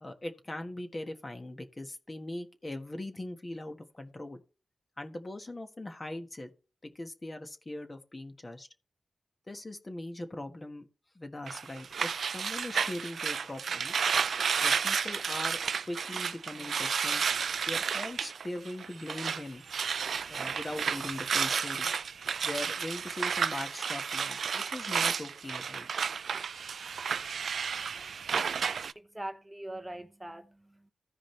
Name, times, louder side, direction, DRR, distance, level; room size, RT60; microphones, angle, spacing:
voice 1, 0.0-4.4 5.0-6.5 6.8-8.7 9.5-10.9 11.1-13.9 14.6-15.6 15.8-17.4 17.7-19.7 20.3-21.9 22.4-25.9, left 1 dB, 30° left, 1.4 m, -40 dB
sound 1, 11.5-19.4 19.7-28.9, right 6 dB, 85° right, 0.3 m, -32 dB
voice 2, 28.9-30.9, right 1 dB, 15° right, 0.8 m, -42 dB
15.0 x 5.0 x 3.2 m
cardioid pair, 70°, 0 cm